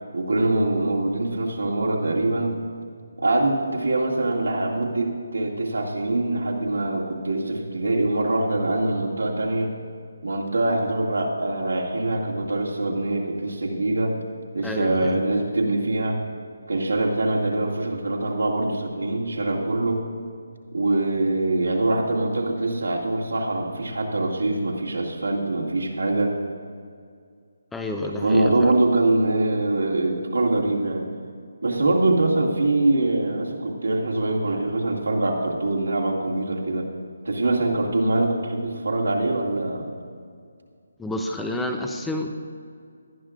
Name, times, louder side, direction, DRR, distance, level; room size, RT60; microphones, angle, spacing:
voice 1, 0.1-2.6 3.2-9.7 10.2-14.2 14.5-16.2 16.7-20.0 20.7-26.3 28.0-31.1 31.6-36.9 37.2-39.9, right 2 dB, 80° right, -2 dB, 2.2 m, -23 dB
voice 2, 14.6-15.2 27.7-28.7 41.0-42.3, left 1 dB, 5° left, 3 dB, 0.7 m, -29 dB
18.5 x 11.5 x 2.5 m, 2.2 s
figure-of-eight pair, 150°, 0 cm